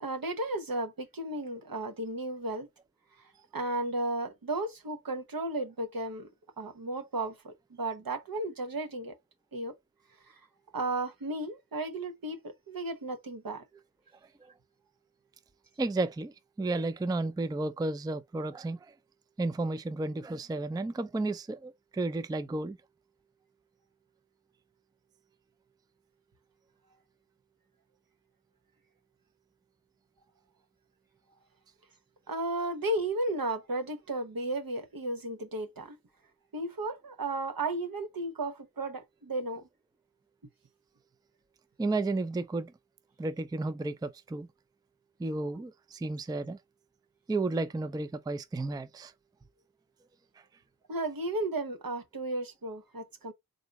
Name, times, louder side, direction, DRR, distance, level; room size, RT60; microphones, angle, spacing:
voice 1, 0.0-2.7 3.5-6.3 6.6-9.1 9.5-9.7 10.7-13.6 32.3-36.0 36.5-39.7 50.9-53.3, right 2 dB, 70° right, 1.0 m, -34 dB
voice 2, 15.8-18.9 19.4-22.8 41.8-42.7 43.2-44.5 45.2-46.6 47.3-49.1, right 2 dB, 10° right, 0.3 m, -32 dB
3.9 x 2.6 x 4.6 m
wide cardioid pair, 75°, 36 cm